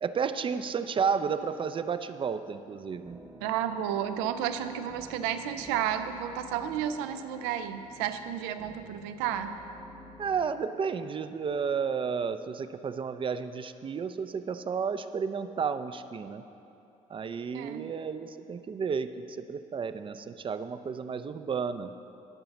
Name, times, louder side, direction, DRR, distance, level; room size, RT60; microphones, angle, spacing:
voice 1, 0.0-3.2 10.2-16.4 17.1-21.9, right 6 dB, 30° right, 11 dB, 0.5 m, -32 dB
sound 1, 3.1-10.4, right 1 dB, 10° right, 1.0 m, -50 dB
voice 2, 3.4-9.6 17.5-17.9, right 9 dB, 85° right, 10 dB, 0.5 m, -32 dB
11.5 x 4.0 x 7.1 m, 2.8 s
supercardioid pair, 70°, 16 cm